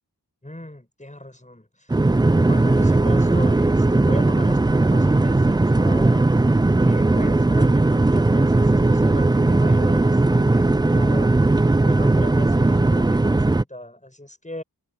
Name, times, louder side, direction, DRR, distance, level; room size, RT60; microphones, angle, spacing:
voice 1, 0.4-2.1 2.4-6.3 6.8-14.6, left 1 dB, 20° left, 7.1 m, -38 dB
sound 1, 1.9-13.6, right 2 dB, 10° right, 0.4 m, -18 dB
cardioid pair, 45°, 40 cm